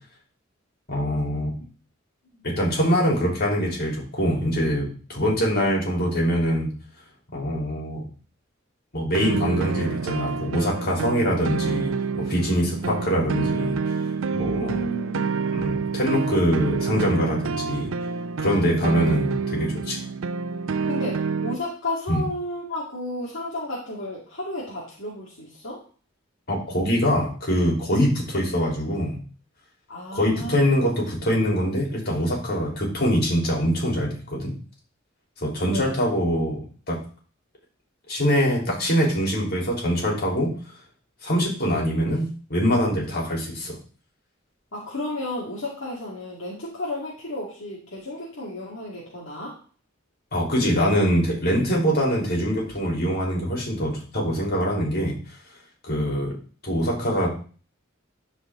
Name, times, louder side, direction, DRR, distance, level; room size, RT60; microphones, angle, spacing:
voice 1, 0.9-1.5 2.4-6.7 7.3-8.0 8.9-13.7 14.3-14.8 15.5-17.9 18.4-20.0 22.1-22.2 26.5-29.2 30.1-34.5 35.4-36.6 36.9-37.0 38.1-40.5 41.2-43.8 50.3-55.2 55.8-56.4 56.6-57.3, equal, 50° left, -2 dB, 3.7 m, -23 dB
sound 1, 9.1-21.6, right 5 dB, 75° right, 0.5 m, -28 dB
voice 2, 14.6-15.5 18.4-18.8 20.9-25.8 29.9-30.7 35.6-35.9 44.7-49.6, left 1 dB, 65° left, -6 dB, 2.3 m, -33 dB
12.0 x 5.2 x 3.8 m, 0.40 s
head